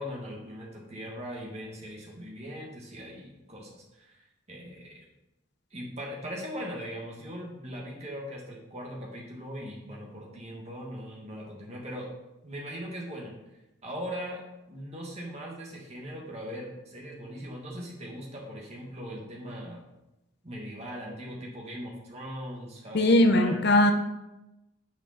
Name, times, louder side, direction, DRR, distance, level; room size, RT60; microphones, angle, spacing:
voice 1, 0.0-4.2 4.5-5.0 5.7-12.1 12.4-13.3 13.8-14.4 14.7-19.8 20.4-23.6, equal, 30° right, -3 dB, 1.8 m, -40 dB
voice 2, 22.9-23.9, left 1 dB, 55° left, 7 dB, 0.7 m, -20 dB
9.1 x 5.1 x 4.2 m, 0.96 s
head